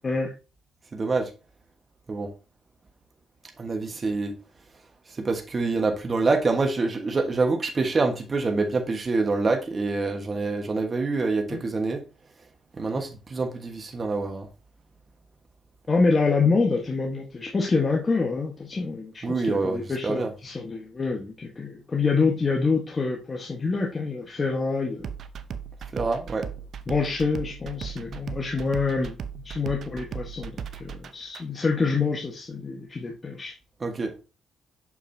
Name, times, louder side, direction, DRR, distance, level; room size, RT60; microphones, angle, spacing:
voice 1, 0.9-1.3 2.1-2.3 3.6-4.3 5.2-12.0 12.8-14.5 19.2-20.3 25.9-26.5 33.8-34.1, right 3 dB, 35° right, 4 dB, 1.3 m, -26 dB
voice 2, 15.9-25.1 26.9-29.1 29.4-33.5, left 4 dB, 30° left, 0 dB, 1.3 m, -26 dB
sound 1, 25.0-31.4, right 7 dB, 60° right, 0.7 m, -37 dB
6.6 x 6.0 x 2.7 m, 0.32 s
cardioid pair, 90°, 0 cm